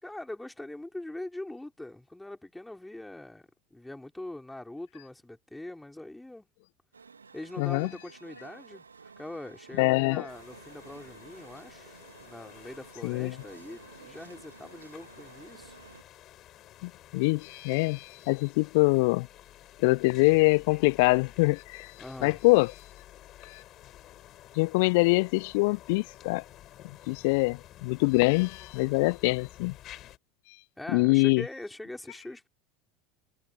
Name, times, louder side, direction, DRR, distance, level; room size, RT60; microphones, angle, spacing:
voice 1, 0.0-3.4 3.7-6.5 7.3-8.8 9.2-11.9 12.2-15.8 22.0-22.4 30.8-32.5, left 1 dB, 5° left, 4.2 m, -42 dB
sound 1, 6.9-16.0, right 5 dB, 85° right, 2.1 m, -52 dB
voice 2, 7.6-7.9 9.8-10.3 13.0-13.4 16.8-19.3 19.8-21.9 22.2-22.7 23.4-23.6 24.6-26.4 27.1-29.7 30.9-31.4, left 27 dB, 60° left, 0.3 m, -24 dB
sound 2, 10.3-30.2, left 13 dB, 45° left, 6.5 m, -51 dB
figure-of-eight pair, 75°, 0 cm